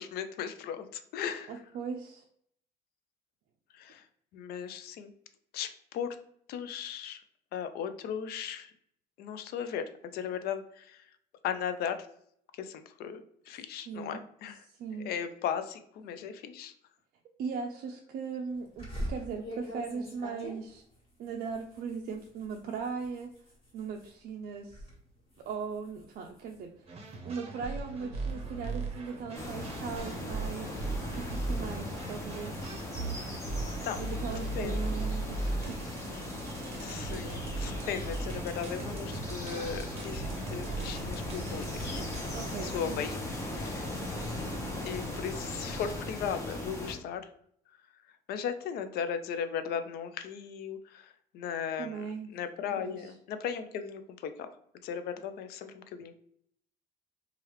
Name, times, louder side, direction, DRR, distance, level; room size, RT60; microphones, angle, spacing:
voice 1, 0.0-1.6 3.7-4.1 4.3-5.1 5.5-6.2 6.5-7.2 7.5-8.7 9.2-11.1 11.4-12.0 12.5-14.6 15.0-16.7 33.8-34.0 34.6-34.8 36.8-42.0 42.6-43.2 43.5-43.8 44.8-47.2 48.1-52.0 52.3-54.5 54.8-56.2, left 8 dB, 70° left, 10 dB, 0.4 m, -37 dB
voice 2, 1.5-2.2 13.9-14.2 14.8-15.1 17.4-20.8 21.2-23.3 23.7-24.8 25.5-26.7 27.2-32.6 34.0-36.0 42.3-43.0 51.8-52.3 52.8-53.0, right 5 dB, 60° right, 1 dB, 0.4 m, -38 dB
sound 1, 18.8-24.2 24.5-24.9 25.3-27.3 27.9-30.1, equal, 30° left, 1.5 m, -44 dB
sound 2, 26.9-42.3, right 2 dB, 35° right, 0.7 m, -38 dB
sound 3, 29.3-46.9, left 1 dB, 15° left, 0.8 m, -38 dB
3.1 x 2.4 x 3.0 m, 0.68 s
cardioid pair, 110°, 17 cm